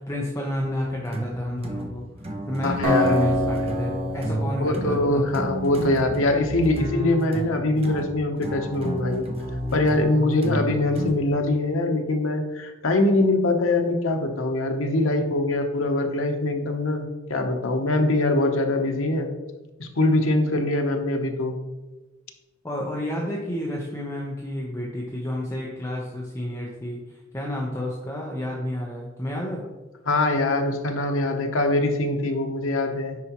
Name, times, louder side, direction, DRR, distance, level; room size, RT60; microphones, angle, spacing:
voice 1, 0.0-2.0 2.5-5.3 22.6-29.6, left 1 dB, 15° left, -3 dB, 0.8 m, -30 dB
sound 1, 0.6-11.5, equal, 30° right, 0.8 m, -32 dB
voice 2, 2.6-3.2 4.6-9.3 9.7-19.3 19.8-21.5 30.1-33.2, left 2 dB, 90° left, 4 dB, 0.9 m, -23 dB
Acoustic guitar, 2.8-6.0, equal, 75° right, 1.7 m, -27 dB
9.5 x 4.6 x 3.0 m, 1.2 s
head